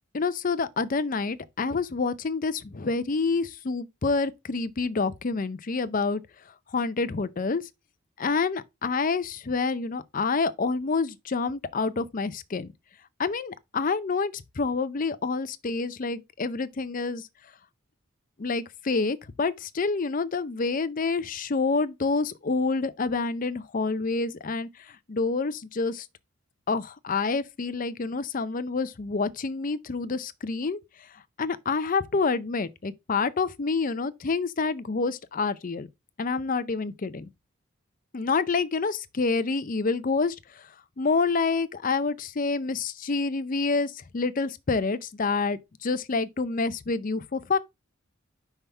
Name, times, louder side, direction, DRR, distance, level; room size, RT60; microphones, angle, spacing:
voice 1, 0.1-6.2 6.7-7.7 8.2-12.7 13.2-17.3 18.4-26.1 26.7-30.8 31.4-35.9 36.2-37.3 38.1-40.7 41.0-47.6, left 4 dB, 40° left, 0.5 m, -28 dB
5.7 x 3.4 x 5.5 m
head